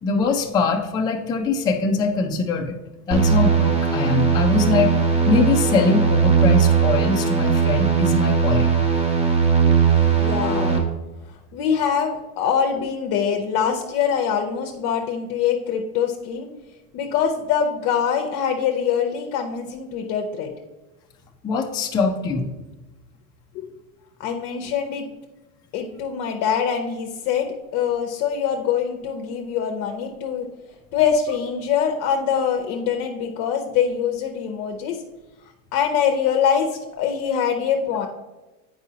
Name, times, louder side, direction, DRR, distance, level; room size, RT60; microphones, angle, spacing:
voice 1, 0.0-2.8 3.1-4.9 5.3-8.8 21.4-22.5, left 4 dB, 10° left, 1 dB, 0.3 m, -22 dB
sound 1, 3.1-10.8, right 6 dB, 15° right, 1.0 m, -19 dB
voice 2, 9.8-10.9 11.3-16.5 16.9-20.5 23.5-23.7 24.2-25.1 25.7-30.5 30.9-35.0 35.7-38.1, left 7 dB, 45° left, 3 dB, 0.7 m, -24 dB
8.0 x 4.8 x 2.8 m, 1.1 s
supercardioid pair, 125°, 43 cm